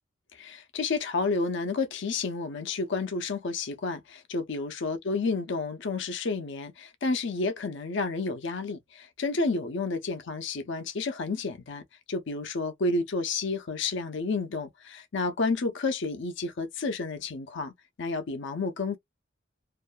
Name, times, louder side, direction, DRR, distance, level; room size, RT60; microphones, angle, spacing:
voice 1, 0.4-11.8 12.1-17.7 18.0-19.0, left 3 dB, 65° left, 0.6 m, -30 dB
2.6 x 2.2 x 2.4 m
head